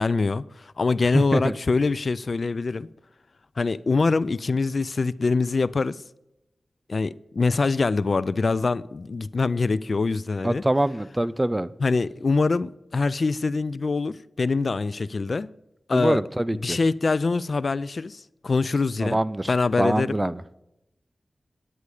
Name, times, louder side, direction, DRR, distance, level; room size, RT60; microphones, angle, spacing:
voice 1, 0.0-2.9 3.6-6.0 6.9-10.6 11.8-15.5 15.9-16.2 16.6-19.2 19.5-20.1, left 4 dB, 65° left, 0.3 m, -24 dB
voice 2, 1.1-1.5 10.4-11.7 15.9-16.8 19.0-19.5 19.8-20.4, right 1 dB, 20° right, 0.5 m, -24 dB
9.9 x 9.4 x 4.8 m
cardioid pair, 45°, 0 cm